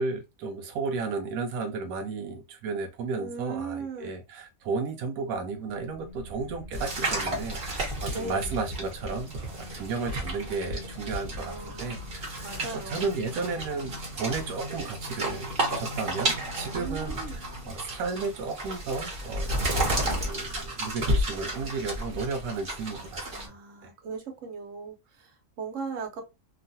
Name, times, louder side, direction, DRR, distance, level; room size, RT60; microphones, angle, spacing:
voice 1, 0.0-11.5 11.8-23.3, right 4 dB, 90° right, 1.0 m, -33 dB
voice 2, 3.1-4.1 8.1-8.6 11.4-12.1 12.4-13.0 16.7-17.4 23.2-26.2, right 4 dB, 65° right, 1.2 m, -38 dB
sound 1, 5.1-17.8, left 1 dB, 55° left, 0.7 m, -44 dB
sound 2, 6.7-23.5, right 1 dB, 45° right, 1.1 m, -32 dB
3.0 x 2.3 x 2.6 m
omnidirectional pair, 1.5 m